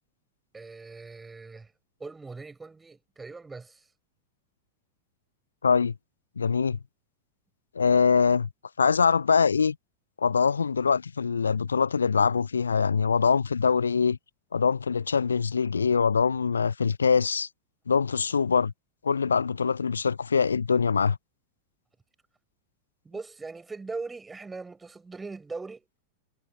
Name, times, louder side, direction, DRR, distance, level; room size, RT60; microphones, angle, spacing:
voice 1, 0.5-1.7 2.0-3.9 23.0-25.8, right 4 dB, 10° right, 5.4 m, -40 dB
voice 2, 5.6-5.9 6.4-6.8 7.8-8.5 8.8-9.7 10.2-14.2 14.5-17.5 17.9-18.7 19.0-21.2, left 5 dB, 75° left, 0.5 m, -23 dB
figure-of-eight pair, 90°, 0 cm